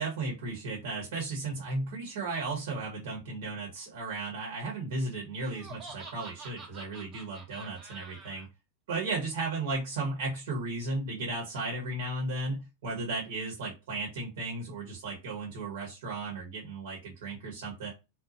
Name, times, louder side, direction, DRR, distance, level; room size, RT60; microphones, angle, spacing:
voice 1, 0.0-8.5 8.9-17.9, right 3 dB, 60° right, 0 dB, 1.0 m, -35 dB
Laughter, 5.4-8.5, right 3 dB, 25° right, 0.8 m, -47 dB
2.9 x 2.0 x 2.7 m, 0.25 s
figure-of-eight pair, 90°, 0 cm